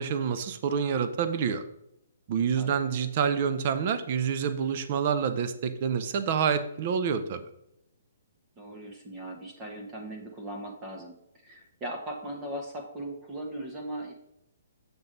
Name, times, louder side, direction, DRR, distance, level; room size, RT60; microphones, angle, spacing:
voice 1, 0.0-1.6 2.3-7.4, right 7 dB, 40° right, 10 dB, 0.7 m, -27 dB
voice 2, 8.6-14.1, right 1 dB, 20° right, 2 dB, 1.3 m, -39 dB
7.0 x 5.9 x 4.0 m, 0.82 s
hypercardioid pair, 155°, 0 cm